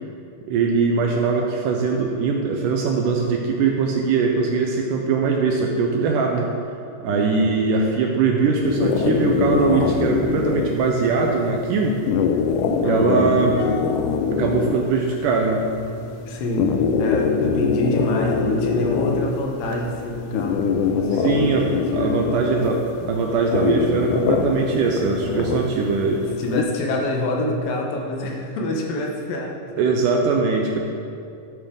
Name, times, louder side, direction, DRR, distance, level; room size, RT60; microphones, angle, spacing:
voice 1, 0.5-6.5 7.0-12.0 12.8-13.5 14.4-15.6 21.2-21.7 21.9-22.8 23.1-26.3 29.8-30.8, right 4 dB, 80° right, 1 dB, 2.0 m, -21 dB
voice 2, 7.1-7.5 12.8-13.4 16.3-22.5 23.0-23.1 25.2-25.4 26.4-29.9, left 1 dB, 70° left, 0 dB, 2.8 m, -27 dB
sound 1, 8.6-26.6, left 5 dB, 90° left, 1.8 m, -24 dB
11.5 x 8.4 x 3.9 m, 2.4 s
omnidirectional pair, 4.3 m